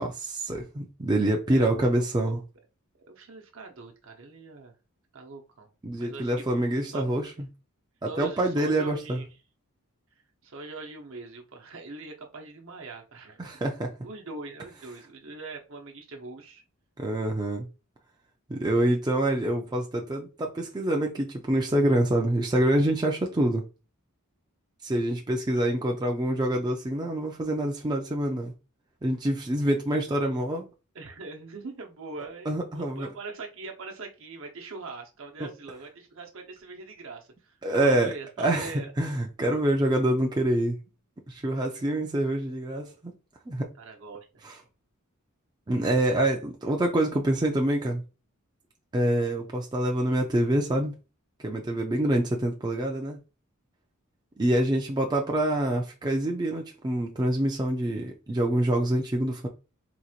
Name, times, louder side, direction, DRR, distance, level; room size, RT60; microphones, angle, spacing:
voice 1, 0.0-2.4 5.8-7.3 8.0-9.2 13.4-13.9 17.0-17.7 18.5-23.6 24.8-28.5 29.0-30.7 32.5-33.1 35.4-35.5 37.6-40.8 41.3-43.1 43.5-43.7 44.4-44.5 45.7-48.0 48.9-50.9 51.4-53.2 54.4-59.5, right 1 dB, 20° right, 0.4 m, -26 dB
voice 2, 1.5-2.4 3.1-4.8 5.1-5.7 6.0-6.5 6.9-7.1 8.0-9.3 10.4-13.5 14.0-16.6 25.5-25.7 30.9-37.6 37.8-39.1 43.7-44.3, right 3 dB, 65° right, 0.9 m, -42 dB
3.9 x 3.0 x 2.4 m
head